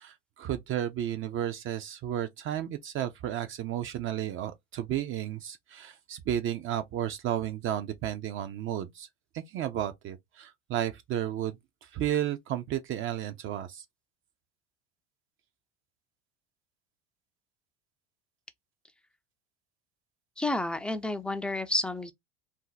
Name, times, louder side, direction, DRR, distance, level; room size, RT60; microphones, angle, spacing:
voice 1, 0.0-9.1 9.3-13.8, right 11 dB, 45° right, 0.6 m, -33 dB
voice 2, 20.4-22.1, left 2 dB, 5° left, 0.4 m, -30 dB
2.7 x 2.1 x 3.9 m
supercardioid pair, 95°, 29 cm